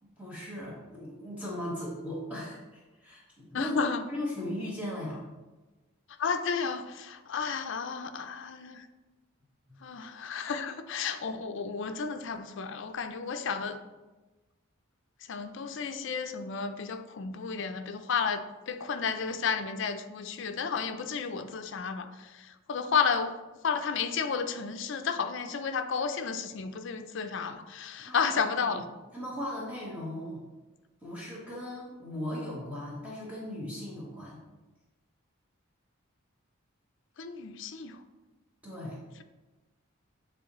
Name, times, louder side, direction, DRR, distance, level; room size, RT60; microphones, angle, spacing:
voice 1, 0.0-3.8 4.1-5.2 9.7-9.8 28.0-28.3 28.7-28.8 29.1-30.4 31.0-34.4 38.6-39.0, left 1 dB, 5° right, 1.2 m, -38 dB
voice 2, 3.5-4.0 6.2-8.8 9.8-13.8 15.3-22.1 22.7-23.3 23.6-28.8 37.2-38.0, left 5 dB, 55° left, 0.4 m, -32 dB
8.8 x 3.6 x 3.0 m
head